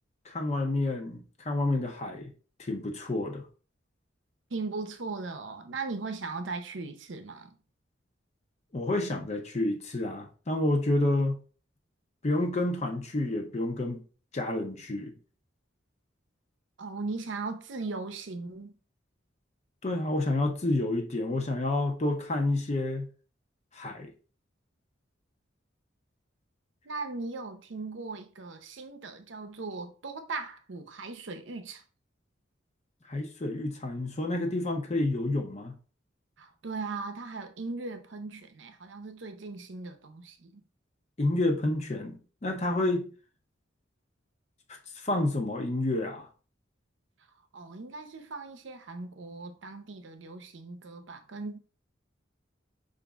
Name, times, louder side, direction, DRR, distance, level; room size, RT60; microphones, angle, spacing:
voice 1, 0.3-2.3 2.6-3.4 8.7-11.4 12.2-14.0 14.3-15.1 19.8-23.1 23.7-24.1 33.1-35.7 41.2-43.1 45.0-46.3, left 2 dB, 35° left, 0.7 m, -29 dB
voice 2, 4.5-7.6 16.8-18.7 26.8-31.8 36.4-40.6 47.5-51.6, right 3 dB, 70° right, 0.7 m, -38 dB
5.1 x 2.6 x 3.4 m
head